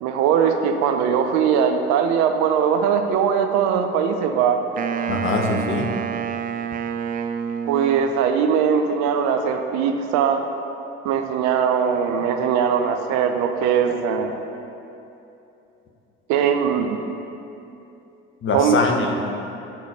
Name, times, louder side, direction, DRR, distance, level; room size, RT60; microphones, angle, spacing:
voice 1, 0.0-4.6 7.7-10.4 11.0-14.3 16.3-17.0 18.5-18.8, right 7 dB, 60° right, 6 dB, 0.7 m, -20 dB
Wind instrument woodwind instrument, 4.8-8.2, right 8 dB, 30° right, 0.4 m, -28 dB
voice 2, 5.1-5.9 18.4-19.3, left 3 dB, 40° left, 2 dB, 1.1 m, -22 dB
10.5 x 4.0 x 4.7 m, 2.9 s
hypercardioid pair, 60°, 31 cm